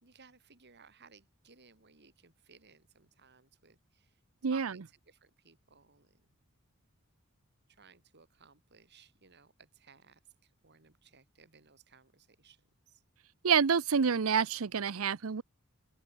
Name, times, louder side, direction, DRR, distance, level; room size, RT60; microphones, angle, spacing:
voice 1, 0.0-4.1 4.4-6.1 7.8-10.2 10.6-12.6 12.9-13.0, right 5 dB, 50° right, 3.1 m, -59 dB
voice 2, 4.4-4.8 13.4-15.4, right 6 dB, 75° right, 0.6 m, -28 dB
open air
head